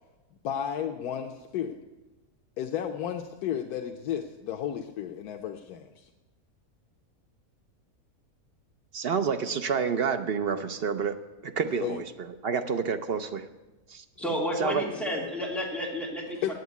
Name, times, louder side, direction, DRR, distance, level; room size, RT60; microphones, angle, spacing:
voice 1, 0.4-1.8 2.6-6.1 11.8-12.0 14.6-15.3 16.4-16.5, left 9 dB, 90° left, 3 dB, 1.2 m, -33 dB
voice 2, 8.9-11.2 11.4-13.5 13.9-14.0 14.6-14.8, right 6 dB, 55° right, 8 dB, 0.7 m, -29 dB
voice 3, 14.2-16.5, equal, ahead, -4 dB, 2.8 m, -31 dB
9.4 x 7.9 x 9.3 m, 1.1 s
omnidirectional pair, 1.6 m